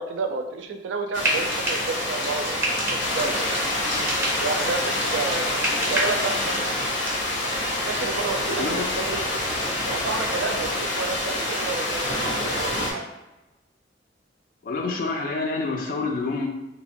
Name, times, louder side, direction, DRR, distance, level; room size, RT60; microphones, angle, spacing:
voice 1, 0.0-3.6 4.4-6.8 7.8-9.2 9.8-13.1, right 4 dB, 80° right, 5 dB, 0.3 m, -31 dB
sound 1, 1.1-12.9, left 1 dB, 70° left, 0.7 m, -27 dB
Frying (food), 1.1-7.2, right 1 dB, 15° right, 0.5 m, -31 dB
voice 2, 8.5-9.0 14.6-16.5, left 3 dB, 50° left, 1 dB, 0.3 m, -27 dB
3.0 x 2.1 x 2.5 m, 1.0 s
head